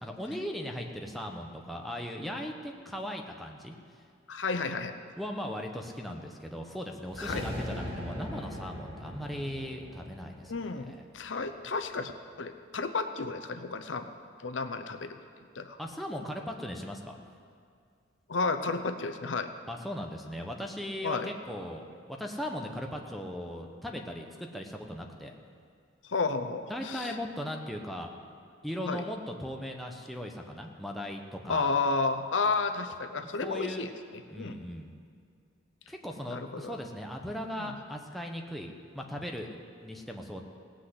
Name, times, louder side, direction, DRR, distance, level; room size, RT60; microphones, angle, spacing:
voice 1, 0.0-3.8 5.2-11.0 15.8-17.2 19.7-25.3 26.7-28.1 28.6-31.8 33.4-33.9 34.3-34.9 35.9-38.7 38.9-40.4, equal, ahead, 1 dB, 1.0 m, -38 dB
voice 2, 4.3-4.9 7.2-7.4 10.5-12.1 12.4-14.1 14.4-15.2 15.6-15.8 18.3-19.5 21.0-21.3 26.1-27.1 28.9-29.0 31.5-34.7 36.3-36.7 37.6-37.7, left 4 dB, 80° left, 8 dB, 0.7 m, -32 dB
sound 1, 7.0-11.4, left 1 dB, 30° right, 3.3 m, -40 dB
18.0 x 6.3 x 7.9 m, 2.2 s
head